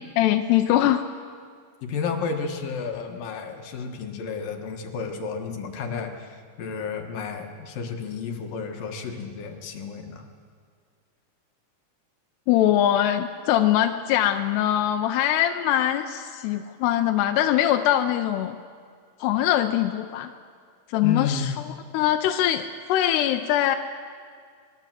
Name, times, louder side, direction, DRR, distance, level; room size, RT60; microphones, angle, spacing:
voice 1, 0.2-1.0 12.5-18.6 19.2-20.3 20.9-23.8, left 12 dB, 85° left, 5 dB, 2.8 m, -22 dB
voice 2, 1.9-10.2 21.0-21.5, left 5 dB, 65° left, 4 dB, 3.1 m, -31 dB
25.0 x 21.0 x 7.6 m, 2.1 s
omnidirectional pair, 4.6 m